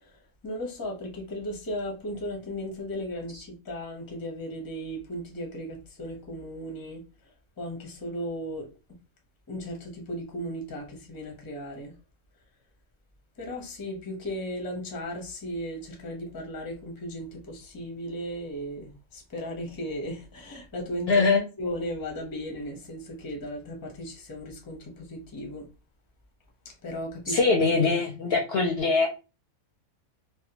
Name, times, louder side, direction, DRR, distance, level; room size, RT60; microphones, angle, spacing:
voice 1, 0.4-7.0 7.6-8.7 9.5-11.9 13.4-21.2 21.6-25.6 26.8-27.4, equal, 25° left, 0.5 m, -36 dB
voice 2, 21.1-21.5 27.3-29.1, left 4 dB, 65° left, 0.6 m, -23 dB
2.7 x 2.1 x 2.8 m
omnidirectional pair, 1.4 m